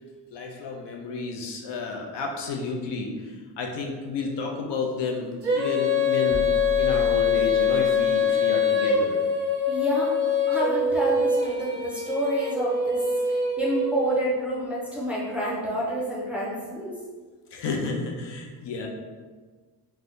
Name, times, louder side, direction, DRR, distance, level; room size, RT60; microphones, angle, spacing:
voice 1, 0.3-6.5 6.8-9.2 17.5-18.9, left 4 dB, 65° left, 1 dB, 0.5 m, -31 dB
Female singing, 5.4-14.2, left 4 dB, 30° right, 0.8 m, -24 dB
sound 1, 6.3-8.1, left 2 dB, 40° left, 1.2 m, -35 dB
voice 2, 9.7-10.2 10.5-13.0 13.3-17.0, right 1 dB, 5° right, -6 dB, 0.5 m, -28 dB
2.6 x 2.3 x 3.4 m, 1.4 s
wide cardioid pair, 140°, 45 cm